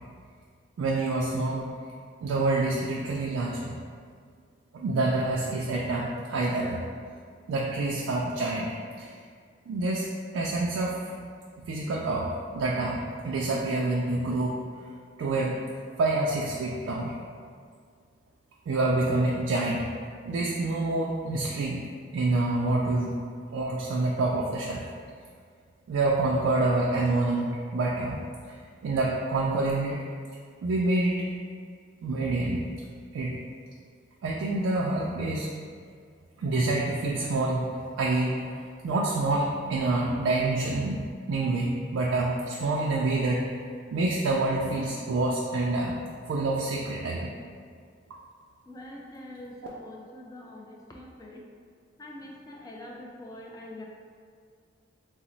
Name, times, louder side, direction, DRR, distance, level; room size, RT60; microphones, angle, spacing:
voice 1, 0.8-1.7 2.2-3.8 4.7-6.8 7.5-9.2 9.7-10.1 10.3-11.2 11.7-13.0 13.2-14.6 15.2-15.6 16.0-17.2 18.7-19.8 20.3-21.8 22.1-23.1 23.5-24.8 25.9-28.2 28.8-30.0 30.6-31.3 32.0-32.6 33.1-33.4 34.2-35.5 36.4-37.7 38.0-38.5 38.8-41.0 41.3-43.5 43.9-46.0 46.3-47.3, right 2 dB, 85° right, -3 dB, 0.3 m, -27 dB
voice 2, 48.7-51.5 52.0-53.9, left 1 dB, 20° left, -2 dB, 0.3 m, -44 dB
2.9 x 2.0 x 3.9 m, 2.1 s
head